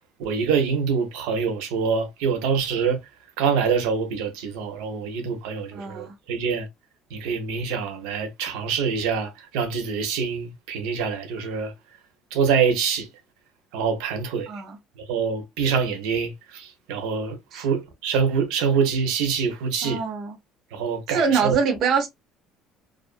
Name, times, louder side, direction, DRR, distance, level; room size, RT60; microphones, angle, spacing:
voice 1, 0.2-3.0 3.4-6.7 7.1-11.7 12.3-13.1 13.7-14.5 15.1-20.0 20.7-21.6, right 6 dB, 90° right, 0.7 m, -25 dB
voice 2, 5.7-6.1 14.5-14.8 17.5-17.7 19.8-20.4 21.1-22.1, right 5 dB, 40° right, 0.6 m, -24 dB
2.5 x 2.4 x 2.3 m
cardioid pair, 155°, 0 cm